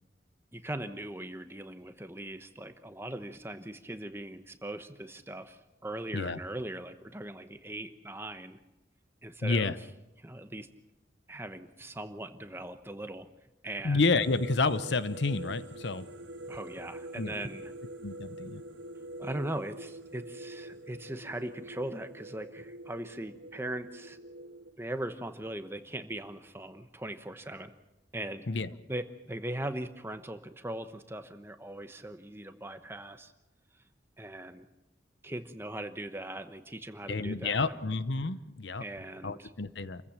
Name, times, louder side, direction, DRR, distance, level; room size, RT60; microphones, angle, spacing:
voice 1, 0.5-8.6 9.2-9.7 10.2-10.7 11.3-13.3 13.6-14.0 16.5-17.7 19.2-24.2 24.8-27.7 28.1-28.5 28.9-33.3 34.2-34.7 35.2-37.8 38.8-39.5, right 1 dB, 15° right, 9 dB, 1.0 m, -40 dB
voice 2, 9.4-9.8 13.8-16.0 17.2-17.3 18.0-18.6 28.5-28.7 37.1-38.8 39.2-40.0, left 3 dB, 75° left, 14 dB, 0.9 m, -29 dB
sound 1, 14.2-24.7, right 1 dB, 70° right, 2.2 m, -45 dB
28.0 x 15.0 x 7.4 m, 1.0 s
head